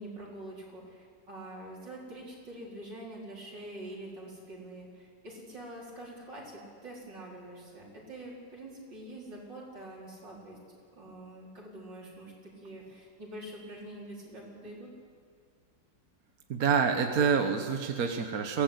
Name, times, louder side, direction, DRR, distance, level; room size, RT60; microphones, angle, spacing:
voice 1, 0.0-14.9, right 1 dB, 80° right, -4 dB, 5.3 m, -45 dB
voice 2, 16.5-18.6, right 6 dB, 55° right, 5 dB, 1.5 m, -27 dB
22.5 x 16.5 x 8.2 m, 2.1 s
omnidirectional pair, 1.9 m